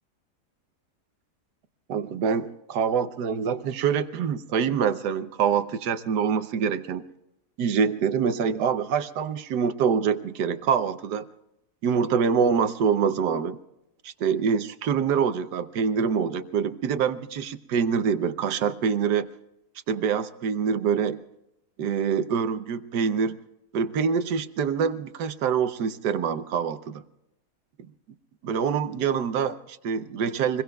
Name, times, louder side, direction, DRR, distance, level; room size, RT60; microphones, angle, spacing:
voice 1, 1.9-7.0 7.6-11.3 11.8-13.6 14.0-19.3 19.9-21.2 21.8-23.4 23.7-27.0 28.4-30.6, right 6 dB, 80° right, 11 dB, 1.4 m, -25 dB
27.0 x 21.5 x 2.3 m, 0.87 s
omnidirectional pair, 1.8 m